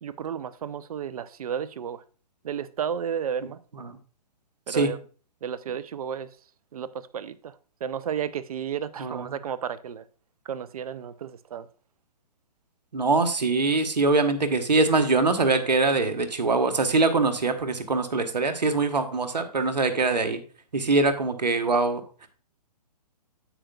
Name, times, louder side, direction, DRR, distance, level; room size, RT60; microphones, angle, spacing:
voice 1, 0.0-2.0 2.4-3.6 4.7-5.0 5.4-6.3 6.7-10.1 10.4-11.7, right 8 dB, 60° right, 0.7 m, -32 dB
voice 2, 9.0-9.3 12.9-20.4 20.7-22.3, right 3 dB, 85° right, 1.5 m, -23 dB
9.9 x 8.1 x 2.4 m
hypercardioid pair, 135°, 21 cm